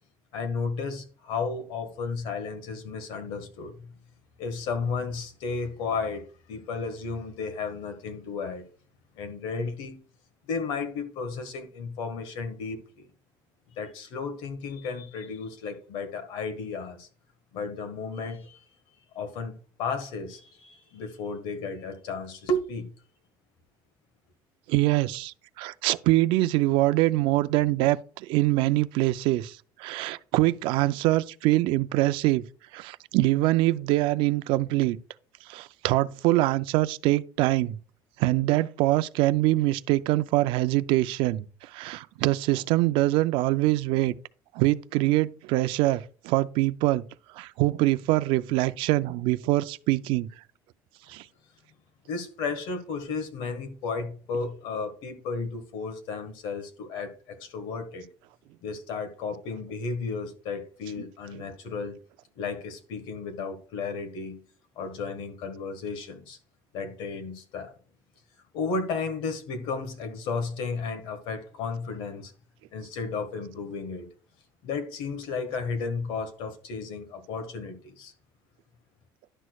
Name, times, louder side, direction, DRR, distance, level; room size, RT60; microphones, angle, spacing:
voice 1, 0.3-3.9 4.4-8.6 9.1-10.0 10.4-13.1 13.7-17.1 17.5-18.6 19.1-22.9 52.1-58.1 58.6-62.0 62.3-64.4 64.7-66.4 66.7-67.7 68.5-72.3 72.7-74.1 74.6-78.1, left 4 dB, 75° left, 1.6 m, -33 dB
voice 2, 24.7-32.4 32.7-35.0 35.5-37.8 38.2-44.1 44.5-47.0 47.3-50.3 51.1-51.2 61.0-61.1 61.3-61.4, right 17 dB, 75° right, 0.4 m, -24 dB
11.0 x 6.2 x 2.3 m
cardioid pair, 145°, 9 cm